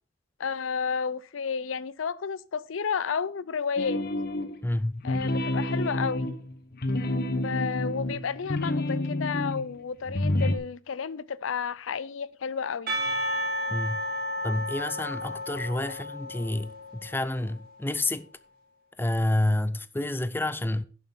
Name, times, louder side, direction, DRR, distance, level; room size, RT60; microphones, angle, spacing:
voice 1, 0.4-4.0 5.0-6.4 7.3-13.0, left 6 dB, 90° left, 0.5 m, -31 dB
sound 1, 3.8-4.6 5.0-9.6 10.0-10.6, left 1 dB, 55° left, 1.1 m, -29 dB
voice 2, 4.6-5.1 13.7-14.1 14.4-18.3 19.0-20.8, left 1 dB, 10° left, 0.5 m, -29 dB
Percussion / Church bell, 12.9-17.4, equal, 50° right, 2.8 m, -32 dB
11.0 x 7.3 x 4.3 m
head